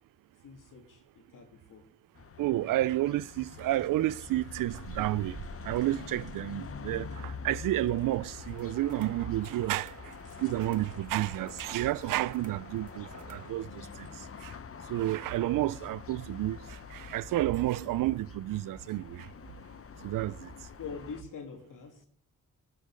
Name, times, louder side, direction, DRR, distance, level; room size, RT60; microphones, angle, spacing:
voice 1, 0.4-1.8 20.8-22.0, left 5 dB, 75° left, 2.8 m, -44 dB
sound 1, 2.1-21.2, left 6 dB, 45° left, 1.0 m, -46 dB
voice 2, 2.4-9.9 10.4-14.1 14.4-14.5 14.9-19.3 20.0-20.5, right 15 dB, 80° right, 0.5 m, -31 dB
sound 2, 3.1-17.3, right 1 dB, 20° right, 6.9 m, -54 dB
sound 3, 8.4-13.5, right 7 dB, 60° right, 1.2 m, -52 dB
18.0 x 9.1 x 5.0 m
supercardioid pair, 50°, 32 cm